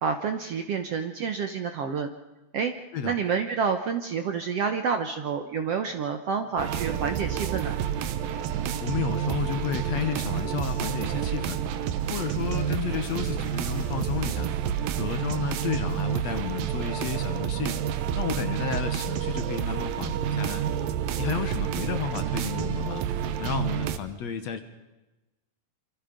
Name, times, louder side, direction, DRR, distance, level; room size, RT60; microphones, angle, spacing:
voice 1, 0.0-2.1 2.5-2.7 3.0-7.7, right 6 dB, 65° right, 6 dB, 1.6 m, -28 dB
sound 1, 6.6-24.0, right 9 dB, 85° right, 2.7 m, -29 dB
voice 2, 8.8-11.6 12.1-14.5 15.0-17.8 18.2-20.6 21.2-23.0 23.4-24.6, left 8 dB, 60° left, 8 dB, 2.1 m, -32 dB
sound 2, 10.6-19.1, right 1 dB, 45° right, 9.0 m, -55 dB
27.0 x 25.5 x 5.2 m, 1.1 s
omnidirectional pair, 3.9 m